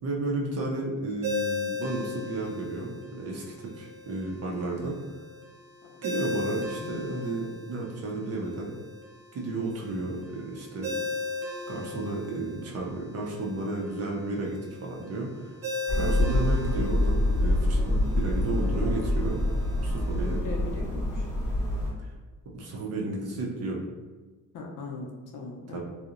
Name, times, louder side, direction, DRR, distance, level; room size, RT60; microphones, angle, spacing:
voice 1, 0.0-5.0 6.0-8.8 9.3-11.0 11.7-15.5 15.9-19.4 19.8-20.4 22.0-22.1 22.5-23.8 25.7-25.8, right 2 dB, 50° right, -2 dB, 0.5 m, -33 dB
Ringtone, 1.2-20.4, left 3 dB, 85° right, 0.8 m, -38 dB
sound 1, 15.9-21.9, left 1 dB, ahead, 0.8 m, -26 dB
voice 2, 19.7-20.0 20.4-21.3 24.5-25.8, left 3 dB, 70° left, 0 dB, 0.5 m, -40 dB
2.7 x 2.0 x 2.4 m, 1.3 s
cardioid pair, 160°, 33 cm